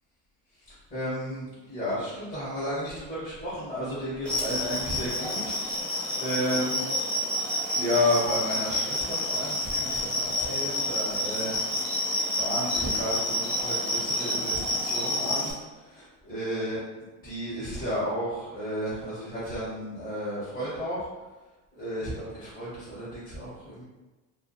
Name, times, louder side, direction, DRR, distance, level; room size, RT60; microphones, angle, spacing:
voice 1, 0.9-6.9 7.7-11.6 12.4-15.5 15.9-16.8 17.2-21.0 21.7-23.8, left 1 dB, 25° left, -11 dB, 0.9 m, -32 dB
sound 1, 4.2-15.5, left 1 dB, 5° left, 0.5 m, -29 dB
2.4 x 2.3 x 2.5 m, 1.2 s
supercardioid pair, 110°, 37 cm